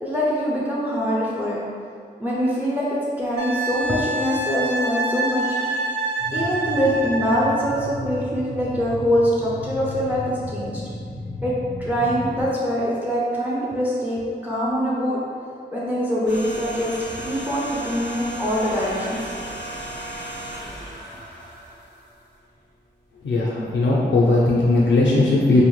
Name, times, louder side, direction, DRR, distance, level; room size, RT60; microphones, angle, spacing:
voice 1, 0.0-1.6 2.2-2.9 3.2-5.8 6.3-10.8 11.4-11.5 11.8-15.2 15.7-19.3, equal, 10° right, -6 dB, 0.5 m, -24 dB
Wind instrument woodwind instrument, 3.4-7.6 10.3-10.4, right 2 dB, 65° right, 0.6 m, -27 dB
sound 1, 6.2-12.4, left 2 dB, 30° right, 1.3 m, -34 dB
sound 2, 16.3-22.6 22.9-23.0, right 1 dB, 85° right, 1.1 m, -35 dB
voice 2, 23.2-25.6, left 2 dB, 85° left, -5 dB, 0.4 m, -18 dB
2.7 x 2.0 x 3.1 m, 2.2 s
wide cardioid pair, 65°, 19 cm